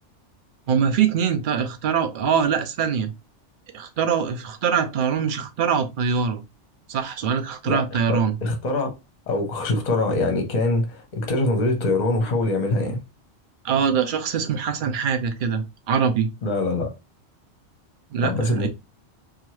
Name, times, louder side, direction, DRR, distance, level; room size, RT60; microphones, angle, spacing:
voice 1, 0.7-3.1 3.7-6.4 6.9-8.4 13.6-16.3 18.1-18.7, right 7 dB, 60° right, 0.5 m, -23 dB
voice 2, 7.6-8.9 9.3-13.0 16.4-16.9 18.2-18.7, left 2 dB, 40° left, 0.8 m, -24 dB
2.7 x 2.4 x 3.1 m
omnidirectional pair, 1.3 m